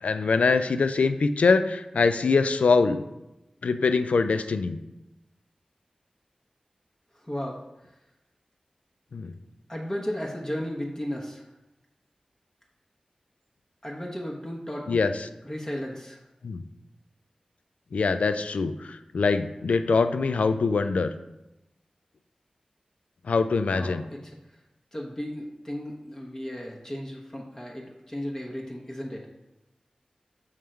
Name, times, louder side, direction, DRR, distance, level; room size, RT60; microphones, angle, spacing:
voice 1, 0.0-3.0 3.6-4.8 9.1-9.3 14.9-15.1 16.4-16.6 17.9-21.1 23.2-24.0, left 4 dB, 90° left, 10 dB, 0.3 m, -23 dB
voice 2, 7.2-7.9 9.7-11.5 13.8-15.0 15.4-16.2 23.7-24.4 24.9-29.3, equal, 25° left, -2 dB, 0.9 m, -35 dB
6.4 x 3.6 x 4.4 m, 0.95 s
wide cardioid pair, 55°, 2 cm